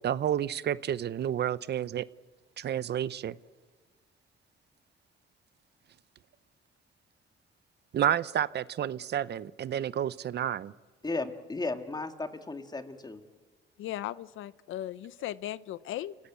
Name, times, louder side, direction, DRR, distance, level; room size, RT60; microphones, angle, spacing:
voice 1, 0.0-2.1 2.6-3.3 7.9-10.7, right 10 dB, 60° right, 18 dB, 0.7 m, -30 dB
voice 2, 11.0-13.2, left 3 dB, 20° left, 8 dB, 2.1 m, -35 dB
voice 3, 13.8-16.2, left 13 dB, 80° left, 18 dB, 0.7 m, -37 dB
29.0 x 17.5 x 8.2 m, 1.4 s
cardioid pair, 90°, 20 cm